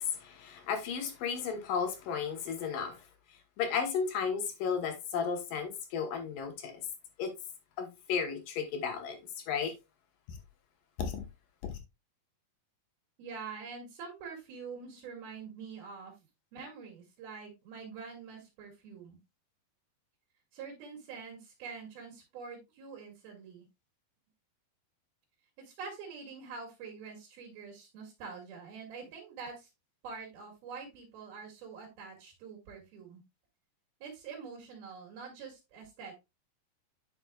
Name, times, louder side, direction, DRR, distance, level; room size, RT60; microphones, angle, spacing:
voice 1, 0.2-3.0 3.6-6.8 7.2-7.3 7.8-9.2 9.5-9.7 11.0-11.2 11.6-11.7, left 6 dB, 70° left, 2.7 m, -34 dB
voice 2, 13.2-16.1 16.5-19.2 20.5-23.7 25.6-29.7 30.0-33.2 34.0-36.1, right 5 dB, 85° right, 4.2 m, -45 dB
10.5 x 5.9 x 2.3 m
omnidirectional pair, 4.2 m